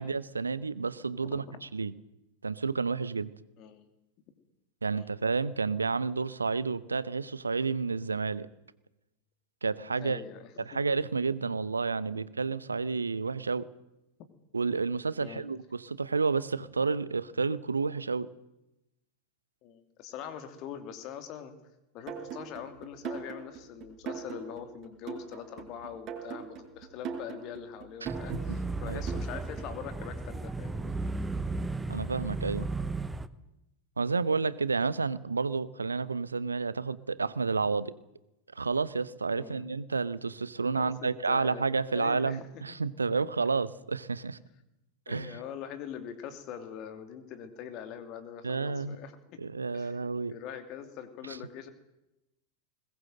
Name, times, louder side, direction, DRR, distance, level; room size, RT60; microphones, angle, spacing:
voice 1, 0.0-1.9 2.4-3.3 4.8-8.5 9.6-10.2 10.6-13.7 14.5-18.3 28.0-28.1 28.9-29.0 31.9-32.7 34.0-37.9 38.6-44.4 45.1-45.4 48.4-49.0 49.4-50.3, right 4 dB, 75° right, 0.9 m, -30 dB
voice 2, 1.2-1.6 3.6-3.8 4.9-5.1 10.0-10.8 12.1-12.2 15.2-15.4 19.6-21.5 21.9-31.0 39.4-39.6 40.7-42.8 45.1-50.0 50.3-51.7, left 8 dB, 40° left, 2.8 m, -43 dB
sound 1, 22.1-29.9, right 7 dB, 35° right, 4.9 m, -41 dB
sound 2, 28.1-33.3, right 3 dB, 10° right, 1.0 m, -34 dB
21.0 x 19.5 x 7.8 m
figure-of-eight pair, 90°, 0 cm